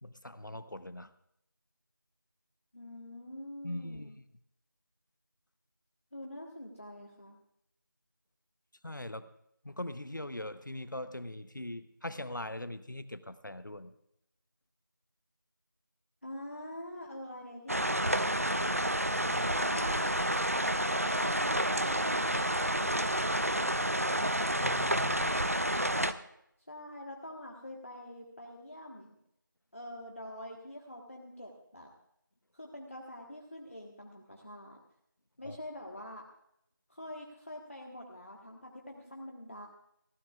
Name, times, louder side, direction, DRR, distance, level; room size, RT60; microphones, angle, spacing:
voice 1, 0.0-1.1 3.6-4.2 8.8-9.3 9.6-13.9 19.2-19.7 24.6-25.4 35.4-35.6, left 1 dB, 65° left, 12 dB, 0.8 m, -41 dB
voice 2, 2.7-4.1 6.1-7.4 16.2-18.9 19.6-20.1 21.0-24.2 26.7-29.2 29.7-31.9 32.5-34.8 35.4-36.2 36.9-39.7, left 1 dB, 40° left, 0 dB, 1.4 m, -45 dB
sound 1, 17.7-26.1, right 1 dB, 45° right, 0.6 m, -29 dB
23.0 x 15.5 x 2.4 m, 0.77 s
figure-of-eight pair, 175°, 11 cm